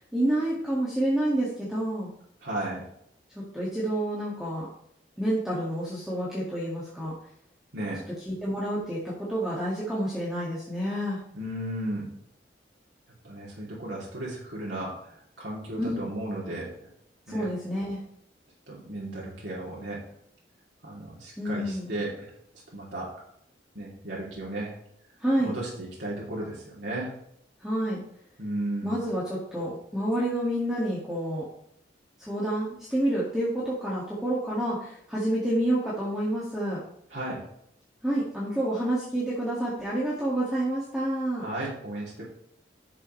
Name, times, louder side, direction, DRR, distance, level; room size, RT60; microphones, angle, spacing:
voice 1, 0.0-2.1 3.3-4.7 5.2-7.1 8.3-11.2 15.8-16.1 17.3-18.0 21.4-21.9 25.2-25.5 27.6-28.0 28.8-31.5 32.2-36.8 38.0-41.5, right 1 dB, 5° right, -8 dB, 2.0 m, -28 dB
voice 2, 2.4-2.8 7.7-8.0 11.3-12.1 13.2-16.7 17.3-17.4 18.7-20.0 20.8-22.3 22.7-23.1 23.7-24.7 25.4-27.1 28.4-29.0 37.1-37.4 41.4-42.2, right 1 dB, 80° right, -6 dB, 2.9 m, -34 dB
10.5 x 7.3 x 3.2 m, 0.72 s
head